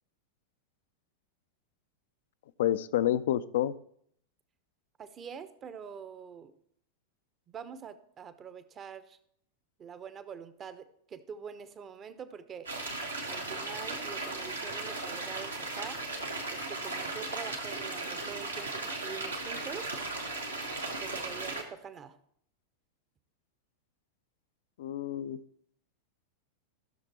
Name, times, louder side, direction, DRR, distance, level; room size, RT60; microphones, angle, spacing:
voice 1, 2.6-3.7 24.8-25.4, left 12 dB, 55° left, 16 dB, 0.4 m, -28 dB
voice 2, 5.0-6.5 7.5-9.2 9.8-12.7 13.3-16.0 16.5-20.0 21.0-22.2, right 7 dB, 25° right, 13 dB, 0.8 m, -45 dB
sound 1, 12.7-21.6, right 3 dB, 80° right, 1.6 m, -36 dB
14.5 x 6.6 x 4.3 m, 0.68 s
figure-of-eight pair, 90°, 0 cm